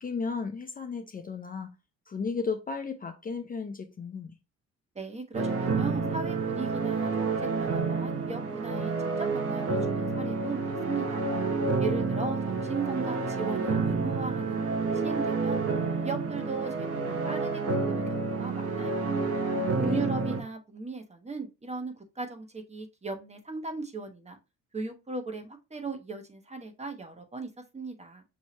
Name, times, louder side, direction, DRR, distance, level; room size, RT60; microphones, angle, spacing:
voice 1, 0.0-1.7 2.1-4.3 19.5-20.1, left 5 dB, 30° left, 0.5 m, -34 dB
voice 2, 4.9-11.3 11.8-15.6 16.0-19.2 19.8-24.4 24.7-28.2, right 4 dB, 20° right, 1.1 m, -37 dB
sound 1, 5.3-20.4, right 4 dB, 50° right, 0.9 m, -29 dB
5.9 x 2.7 x 2.9 m
cardioid pair, 90°, 30 cm